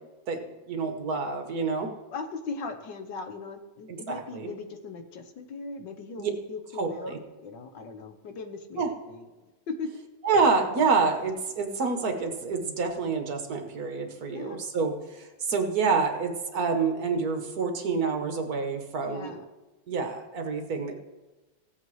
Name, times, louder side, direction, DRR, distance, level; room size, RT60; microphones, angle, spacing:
voice 1, 0.3-1.9 3.9-4.5 6.2-6.3 6.7-7.2 8.8-8.9 10.2-19.4 19.9-20.9, right 4 dB, 55° right, 5 dB, 1.4 m, -28 dB
voice 2, 2.1-9.2 9.7-9.9 14.3-14.7 19.0-19.4, left 4 dB, 70° left, 7 dB, 1.6 m, -39 dB
16.0 x 8.0 x 3.1 m, 1.1 s
omnidirectional pair, 2.1 m